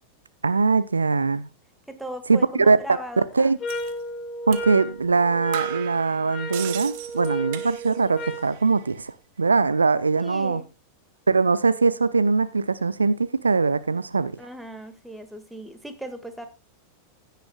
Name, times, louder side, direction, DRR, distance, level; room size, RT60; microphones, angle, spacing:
voice 1, 0.4-1.5 2.3-2.8 3.3-3.6 4.5-10.6 11.3-14.3, right 4 dB, 75° right, 0.7 m, -21 dB
voice 2, 1.9-3.5 10.1-10.6 14.4-16.5, right 1 dB, 5° right, 1.9 m, -38 dB
sound 1, 3.6-8.5, right 2 dB, 30° left, 1.2 m, -34 dB
sound 2, 3.7-3.9 4.5-4.7 5.0-5.1 5.5-8.2 8.4-9.0, right 13 dB, 50° right, 1.0 m, -37 dB
16.0 x 9.2 x 2.3 m
figure-of-eight pair, 90°, 0 cm